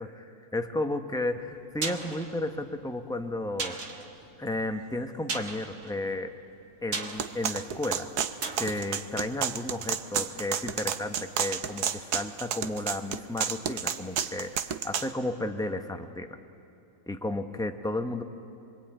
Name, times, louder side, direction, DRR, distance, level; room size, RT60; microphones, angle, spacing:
voice 1, 0.0-3.8 4.4-6.3 6.8-8.1 8.6-16.4 17.1-18.2, left 1 dB, 5° left, 5 dB, 0.6 m, -33 dB
sound 1, 1.4-10.3 10.6-10.7, right 4 dB, 50° right, 1.7 m, -39 dB
sound 2, 7.2-15.1, right 8 dB, 70° right, 1.3 m, -31 dB
24.5 x 23.0 x 9.0 m, 2.7 s
omnidirectional pair, 1.8 m